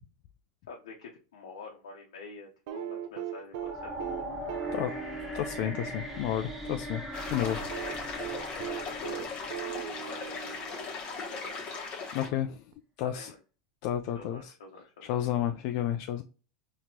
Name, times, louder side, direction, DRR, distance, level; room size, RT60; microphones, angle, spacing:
voice 1, 0.7-3.9 7.5-7.9 8.5-9.3 10.1-11.6 13.0-13.4 14.1-15.1, left 3 dB, 85° left, 0.8 m, -47 dB
sound 1, 2.7-6.8 7.7-11.3 12.7-12.8, right 11 dB, 65° right, 0.5 m, -39 dB
sound 2, 3.5-10.6, equal, 5° right, 1.4 m, -40 dB
voice 2, 5.3-7.0 7.3-7.6 12.1-12.6 13.0-13.3 13.8-14.5 15.0-16.2, left 11 dB, 55° left, 0.4 m, -31 dB
sound 3, 7.1-12.3, left 4 dB, 40° left, 1.1 m, -38 dB
4.3 x 3.0 x 2.7 m
supercardioid pair, 120°, 3 cm